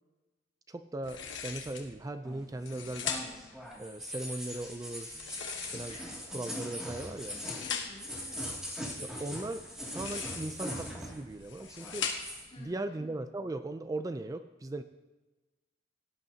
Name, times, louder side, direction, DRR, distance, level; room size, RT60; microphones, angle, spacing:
voice 1, 0.7-3.1 3.8-5.2 5.7-6.0 6.3-7.4 9.0-12.1 12.6-14.8, right 2 dB, 20° right, 10 dB, 0.4 m, -38 dB
sound 1, 1.0-1.9 2.5-3.5 5.1-6.2 7.0-8.1 9.8-10.6 11.3-12.5, left 6 dB, 85° left, 1.4 m, -39 dB
sound 2, 2.2-11.3 11.6-12.5, equal, 5° right, 2.2 m, -41 dB
voice 2, 5.9-6.4 7.6-8.6 12.5-13.1, left 2 dB, 35° left, -4 dB, 2.6 m, -52 dB
17.5 x 10.5 x 2.8 m, 1.1 s
head